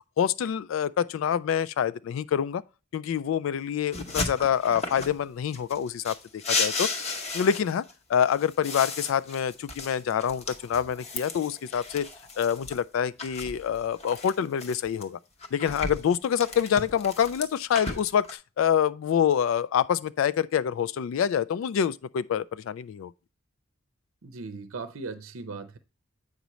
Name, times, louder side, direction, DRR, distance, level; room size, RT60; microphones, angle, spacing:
voice 1, 0.2-2.6 2.9-6.2 6.5-6.9 7.3-7.8 8.1-12.1 12.4-15.2 15.5-23.1, left 8 dB, 75° left, 0.3 m, -26 dB
sound 1, 3.9-5.2 5.5-7.9 8.3-12.8 13.2-15.0 15.4-18.3, left 3 dB, 30° left, 0.8 m, -34 dB
voice 2, 24.2-25.8, right 4 dB, 85° right, 0.6 m, -38 dB
8.1 x 5.1 x 3.0 m
head